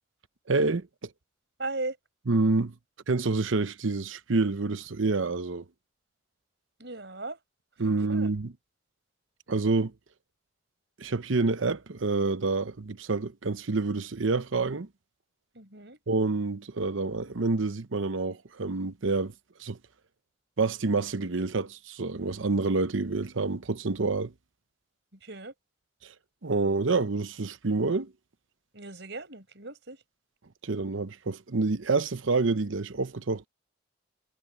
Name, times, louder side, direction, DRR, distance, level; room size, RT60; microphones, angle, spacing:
voice 1, 0.5-0.9 2.3-2.7 3.1-5.6 7.8-8.5 9.5-9.9 11.0-14.9 16.1-19.3 19.6-19.8 20.6-24.3 26.4-28.1 30.6-33.5, right 3 dB, 80° right, 0.9 m, -27 dB
voice 2, 1.6-2.0 6.8-7.4 7.8-8.3 15.5-16.0 25.2-25.5 28.7-30.0, right 2 dB, 60° right, 6.0 m, -37 dB
head